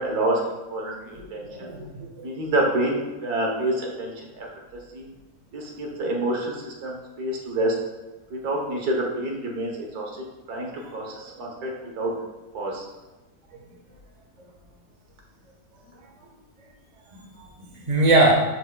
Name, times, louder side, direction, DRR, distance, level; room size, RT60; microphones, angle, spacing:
voice 1, 0.0-1.7 2.2-4.5 4.9-5.1 5.5-7.7 8.3-10.1 10.5-11.7 12.0-12.1 12.5-12.9, right 1 dB, 80° right, -1 dB, 1.6 m, -27 dB
voice 2, 1.1-2.3 10.8-10.9 11.6-11.8 17.1-17.2 17.6-18.3, right 2 dB, 30° right, -2 dB, 1.2 m, -23 dB
11.0 x 4.5 x 2.3 m, 1.1 s
omnidirectional pair, 1.6 m